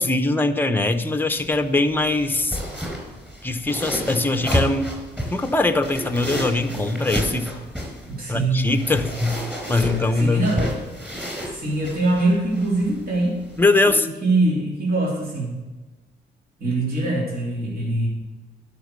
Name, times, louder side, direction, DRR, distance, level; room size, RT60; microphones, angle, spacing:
voice 1, 0.0-2.6 3.4-4.9 5.3-7.5 8.3-9.4 9.7-10.7 13.6-14.1, left 2 dB, 10° left, 7 dB, 0.8 m, -21 dB
sound 1, 1.4-14.0, equal, 5° right, 4.4 m, -31 dB
voice 2, 8.1-8.7 9.9-10.8 11.4-13.4 13.8-15.6 16.6-18.1, right 2 dB, 50° right, -4 dB, 3.5 m, -23 dB
11.5 x 6.0 x 6.7 m, 1.2 s
cardioid pair, 90°, 20 cm